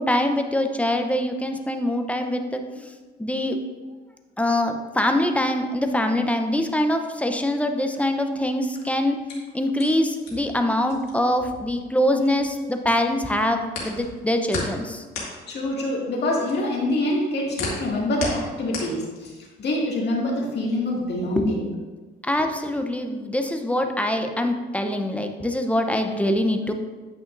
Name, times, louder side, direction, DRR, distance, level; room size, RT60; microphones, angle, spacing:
voice 1, 0.0-2.9 3.2-3.6 4.4-9.2 9.5-15.0 21.4-21.5 22.2-26.7, left 1 dB, 5° left, 5 dB, 0.7 m, -24 dB
sound 1, 8.7-12.7 13.0-19.6, left 4 dB, 90° left, 1.9 m, -35 dB
voice 2, 15.5-19.3 19.6-21.7, left 1 dB, 60° left, -3 dB, 2.0 m, -25 dB
9.1 x 5.7 x 2.6 m, 1.3 s
cardioid pair, 90°, 20 cm